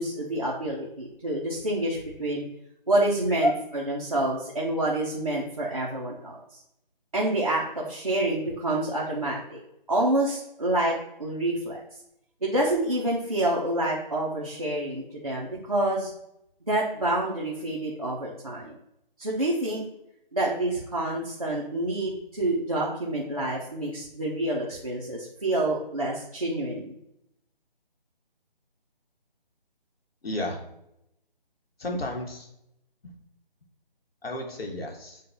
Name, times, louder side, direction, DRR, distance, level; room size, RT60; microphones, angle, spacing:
voice 1, 0.0-2.5 2.9-3.5 3.9-6.4 7.1-9.6 9.9-11.8 12.4-16.1 16.7-18.7 19.2-19.8 20.3-26.9, right 1 dB, 40° right, -5 dB, 0.5 m, -27 dB
voice 2, 30.2-30.6 31.8-32.5 33.0-33.1 34.2-35.2, left 1 dB, 90° left, 1 dB, 1.1 m, -30 dB
6.5 x 2.2 x 2.6 m, 0.80 s
hypercardioid pair, 180°, 29 cm